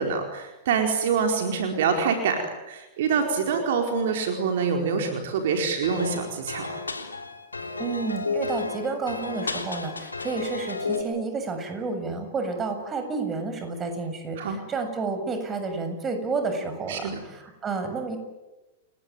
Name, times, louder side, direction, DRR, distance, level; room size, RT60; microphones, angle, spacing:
voice 1, 0.0-6.7 14.4-14.6 16.9-17.2, right 5 dB, 65° right, 4 dB, 4.5 m, -25 dB
sound 1, 5.8-11.0, left 3 dB, 90° left, 3.4 m, -32 dB
voice 2, 7.8-18.2, right 4 dB, 25° right, 7 dB, 7.2 m, -30 dB
30.0 x 20.0 x 9.3 m, 1.0 s
figure-of-eight pair, 100°, 0 cm